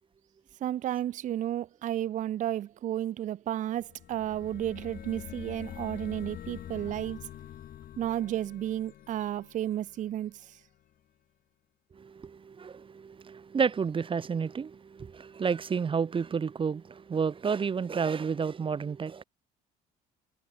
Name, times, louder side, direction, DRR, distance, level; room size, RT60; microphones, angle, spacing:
voice 1, 0.6-7.2 8.0-10.6, right 12 dB, 50° right, 0.5 m, -32 dB
sound 1, 3.8-10.5, left 11 dB, 60° left, 5.6 m, -45 dB
voice 2, 11.9-19.2, right 6 dB, 30° right, 1.2 m, -31 dB
cardioid pair, 110°, 17 cm